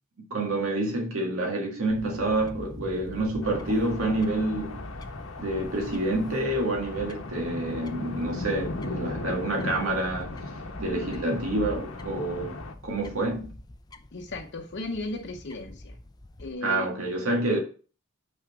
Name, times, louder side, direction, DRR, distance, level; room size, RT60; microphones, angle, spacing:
voice 1, 0.3-4.8 5.4-10.3 10.8-12.6 12.8-13.5 16.6-17.6, right 2 dB, 80° right, 1.8 m, -28 dB
Fowl / Bird, 1.9-16.5, left 1 dB, 20° left, 0.5 m, -43 dB
sound 1, 3.4-12.7, left 2 dB, 80° left, 1.1 m, -38 dB
voice 2, 14.1-16.0 16.4-16.9, left 2 dB, 55° left, 0.8 m, -36 dB
6.0 x 4.3 x 6.1 m
head